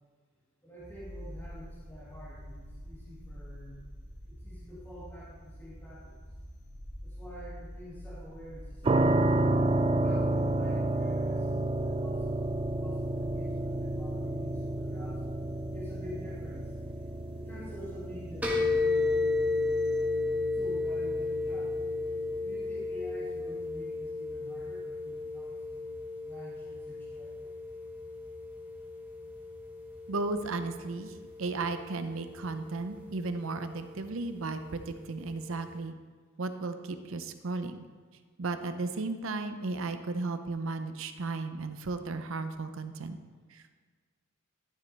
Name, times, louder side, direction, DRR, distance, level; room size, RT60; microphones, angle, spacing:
voice 1, 0.6-3.8 4.3-6.2 7.0-9.2 9.8-15.2 15.7-21.7 22.4-25.9 26.2-27.5, left 1 dB, 10° left, -9 dB, 2.0 m, -48 dB
sound 1, 0.8-20.0, equal, 65° left, 2.3 m, -48 dB
sound 2, 8.8-23.7, right 2 dB, 25° right, 0.3 m, -31 dB
sound 3, 18.4-35.8, left 3 dB, 10° right, 1.3 m, -34 dB
voice 2, 30.1-31.1 31.4-35.9 36.4-37.8 38.4-43.2 43.5-43.7, right 3 dB, 65° right, 9 dB, 0.6 m, -35 dB
11.5 x 7.3 x 3.3 m, 1.5 s
head